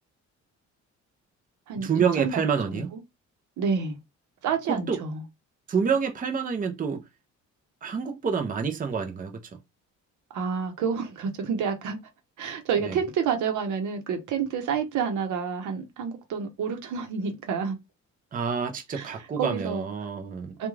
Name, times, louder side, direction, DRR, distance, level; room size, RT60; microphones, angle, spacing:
voice 1, 1.8-2.9 4.7-5.0 5.7-7.0 7.8-9.4 12.8-13.0 18.3-20.7, right 6 dB, 30° right, 0.6 m, -28 dB
voice 2, 2.7-3.0 3.6-4.0 4.4-5.2 10.3-12.0 12.4-17.8 18.9-19.8 20.6-20.7, right 6 dB, 75° right, 0.9 m, -29 dB
2.3 x 2.3 x 3.1 m
cardioid pair, 90°, 30 cm